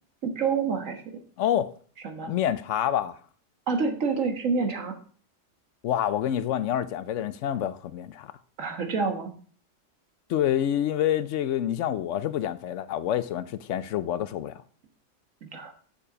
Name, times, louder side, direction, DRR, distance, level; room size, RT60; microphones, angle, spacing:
voice 1, 0.2-1.0 2.0-2.3 3.7-4.9 8.6-9.3 15.4-15.7, right 5 dB, 90° right, 1.7 m, -27 dB
voice 2, 1.4-1.7 2.3-3.2 5.8-8.3 10.3-14.6, left 10 dB, 75° left, 0.9 m, -27 dB
7.1 x 7.0 x 4.9 m
omnidirectional pair, 1.3 m